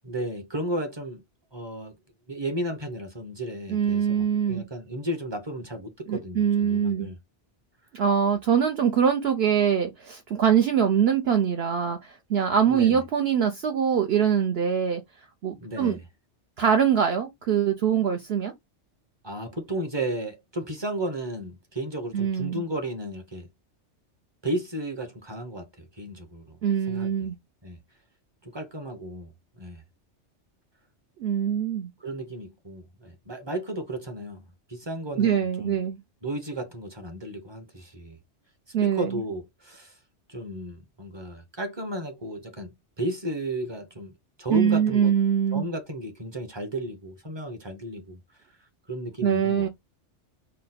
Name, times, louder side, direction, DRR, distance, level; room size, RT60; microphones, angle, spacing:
voice 1, 0.0-1.2 1.5-1.9 2.3-7.2 12.7-13.0 15.6-16.0 19.2-23.5 24.4-26.6 26.9-27.3 27.6-27.8 28.4-29.8 32.0-35.8 36.2-38.2 38.8-40.0 40.3-42.7 43.0-44.1 44.4-45.1 45.5-48.2 48.9-49.7, right 1 dB, 25° right, 0.8 m, -34 dB
voice 2, 3.7-4.6 6.1-7.1 7.9-15.0 15.4-16.0 16.6-18.5 22.1-22.6 26.6-27.4 31.2-31.9 35.2-36.0 38.7-39.1 44.5-45.7 49.2-49.7, right 8 dB, 65° right, 0.8 m, -23 dB
4.3 x 2.1 x 4.0 m
omnidirectional pair, 1.2 m